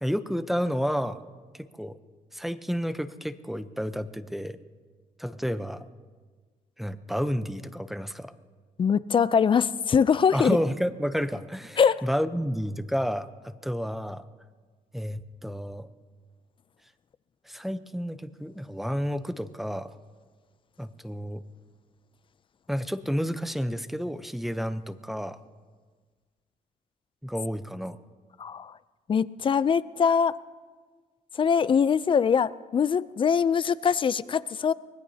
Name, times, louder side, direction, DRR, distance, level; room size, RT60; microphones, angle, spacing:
voice 1, 0.0-1.2 1.6-2.0 2.3-4.6 5.2-5.9 6.8-8.3 10.3-14.2 14.9-15.9 17.5-19.9 20.8-21.4 22.7-25.4 27.2-28.0, equal, ahead, 11 dB, 0.7 m, -30 dB
voice 2, 8.8-10.6 11.8-12.0 28.4-28.7 29.1-30.3 31.4-34.7, left 6 dB, 35° left, 17 dB, 0.4 m, -23 dB
24.5 x 20.0 x 2.8 m, 1.5 s
cardioid pair, 110°, 15 cm